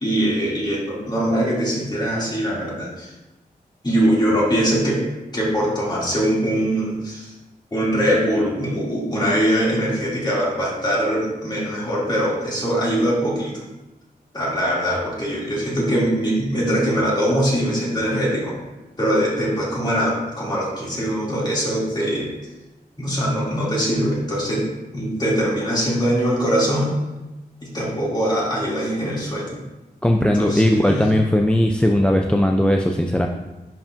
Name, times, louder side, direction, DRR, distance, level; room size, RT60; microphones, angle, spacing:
voice 1, 0.0-3.1 3.8-5.0 5.3-7.3 7.7-13.5 14.3-18.5 19.0-22.3 23.0-24.7 24.9-26.9 27.6-29.6 30.3-31.1, equal, 25° left, -6 dB, 2.5 m, -22 dB
voice 2, 30.0-33.3, left 1 dB, 5° left, 3 dB, 0.3 m, -18 dB
10.5 x 4.9 x 2.6 m, 1.0 s
wide cardioid pair, 125°, 16 cm